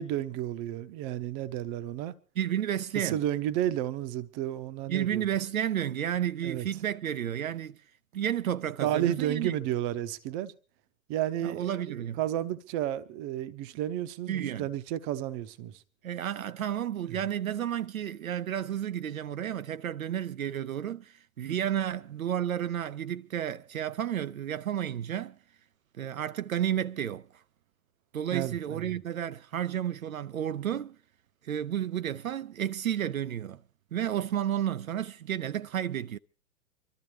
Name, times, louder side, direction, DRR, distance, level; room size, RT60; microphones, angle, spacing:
voice 1, 0.0-2.2 2.9-5.2 6.4-6.7 8.8-10.5 11.1-15.8 17.1-17.2 28.3-29.0, right 12 dB, 30° right, 0.8 m, -32 dB
voice 2, 2.4-3.2 4.9-7.8 8.1-9.5 11.4-12.2 14.3-14.7 16.0-25.4 26.0-27.3 28.1-31.0 31.4-33.6 33.9-36.2, right 10 dB, 75° right, 0.6 m, -31 dB
25.0 x 13.0 x 3.2 m
figure-of-eight pair, 105°, 43 cm